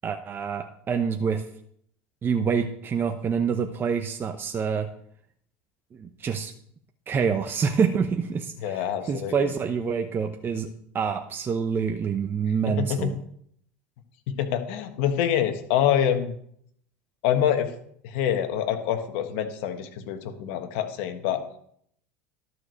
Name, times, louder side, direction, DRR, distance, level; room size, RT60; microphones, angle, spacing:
voice 1, 0.0-1.5 2.2-4.9 6.0-6.5 7.1-10.7 10.9-13.2, right 6 dB, 30° right, 6 dB, 0.9 m, -26 dB
voice 2, 8.6-9.5 12.7-13.1 14.3-16.3 17.2-17.7 18.0-21.4, left 9 dB, 70° left, 7 dB, 1.4 m, -26 dB
12.0 x 4.8 x 6.4 m, 0.66 s
hypercardioid pair, 90°, 7 cm